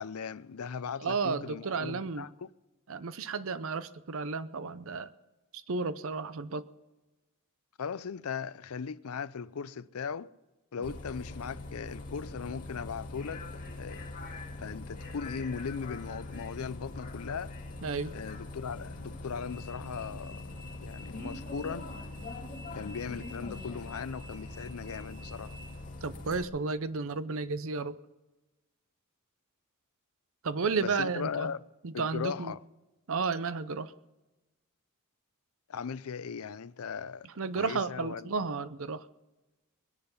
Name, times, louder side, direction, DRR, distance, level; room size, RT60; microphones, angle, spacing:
voice 1, 0.0-2.5 7.8-10.3 10.7-14.1 14.6-17.5 18.1-20.5 20.8-21.9 22.7-25.6 30.8-31.6 31.9-32.7 35.7-37.3 37.5-38.4, left 6 dB, 85° left, 0.5 m, -38 dB
voice 2, 1.0-2.2 2.9-5.1 5.5-6.7 17.8-18.1 26.0-28.0 30.4-31.5 31.8-32.5 33.1-33.9 37.4-39.1, right 4 dB, 65° right, 0.7 m, -32 dB
Bus, 10.8-26.4, left 2 dB, 40° left, 2.0 m, -42 dB
21.0 x 10.5 x 5.6 m
head